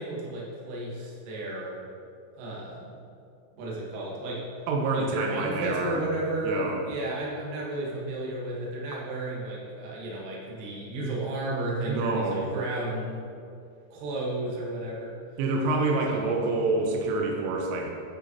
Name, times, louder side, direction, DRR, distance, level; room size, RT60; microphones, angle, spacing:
voice 1, 0.0-1.7 2.3-2.9 3.6-4.4 4.9-13.2 13.9-15.1 16.1-16.2, right 1 dB, 60° right, -4 dB, 2.6 m, -33 dB
voice 2, 4.7-6.1 6.4-6.9 11.9-12.5 15.4-17.9, right 3 dB, 90° right, 0 dB, 3.4 m, -27 dB
9.8 x 8.6 x 3.0 m, 2.5 s
omnidirectional pair, 5.7 m